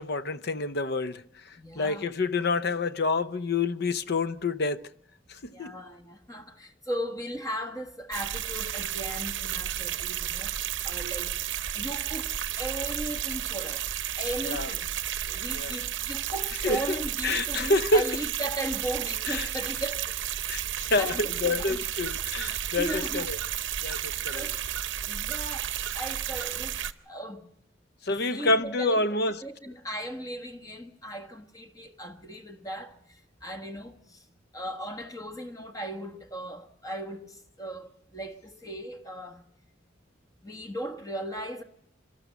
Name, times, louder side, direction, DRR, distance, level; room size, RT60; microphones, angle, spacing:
voice 1, 0.0-4.8 5.3-5.7 14.5-14.7 15.5-15.8 16.6-17.0 17.2-18.0 19.3-19.5 20.5-20.6 20.9-23.4 23.8-24.5 28.0-29.3, left 2 dB, 55° left, 0.7 m, -28 dB
voice 2, 1.6-2.1 5.5-10.5 10.8-11.4 11.7-13.8 14.2-14.9 15.2-20.0 20.6-20.7 21.0-21.8 22.5-23.3 24.1-24.6 25.0-25.7 25.9-27.5 28.1-29.0 29.4-34.2 34.5-39.4 40.4-41.6, right 1 dB, 15° left, 1.4 m, -37 dB
sound 1, 8.1-26.9, right 10 dB, 60° right, 0.7 m, -32 dB
26.0 x 12.5 x 8.2 m
head